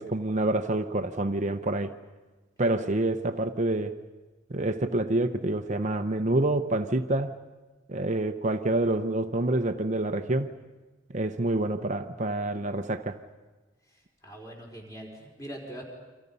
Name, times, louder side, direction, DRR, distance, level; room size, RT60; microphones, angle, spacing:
voice 1, 0.0-1.9 2.6-3.9 4.5-7.4 7.9-10.5 11.1-13.2, right 2 dB, 35° right, 0.8 m, -27 dB
voice 2, 13.9-15.8, right 1 dB, 15° left, 4.4 m, -43 dB
29.5 x 25.5 x 5.5 m
head